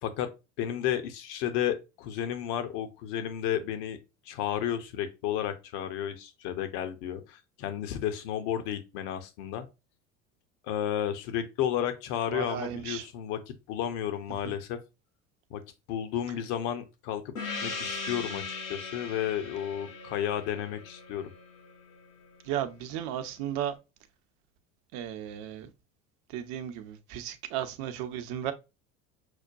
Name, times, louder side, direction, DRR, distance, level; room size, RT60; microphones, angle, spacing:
voice 1, 0.6-4.0 4.3-9.7 10.6-14.8 15.5-15.6 15.9-17.3 17.6-21.3, left 10 dB, 60° left, 0.9 m, -32 dB
voice 2, 12.3-13.1 14.4-14.5 22.4-23.7 24.9-25.7 26.3-28.5, right 10 dB, 55° right, 0.8 m, -35 dB
Gong, 17.4-22.4, left 4 dB, 80° left, 1.1 m, -39 dB
6.3 x 2.2 x 2.5 m
hypercardioid pair, 80°, 40 cm